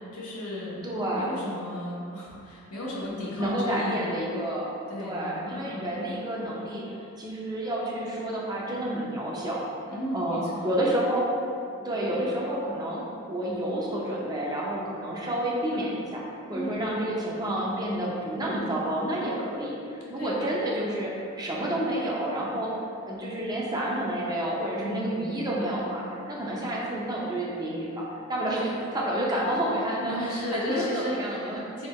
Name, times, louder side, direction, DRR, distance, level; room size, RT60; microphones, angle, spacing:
voice 1, 0.1-0.8 1.1-4.2 4.9-5.9 9.9-10.7 16.5-16.8 20.2-20.3 24.8-25.2 30.0-31.9, left 1 dB, 80° left, -6 dB, 1.0 m, -34 dB
voice 2, 0.8-1.3 3.4-4.7 5.0-9.6 10.1-11.3 11.8-16.2 16.5-22.7 23.0-31.7, right 1 dB, 20° right, -4 dB, 0.6 m, -29 dB
3.5 x 2.8 x 4.1 m, 2.5 s
head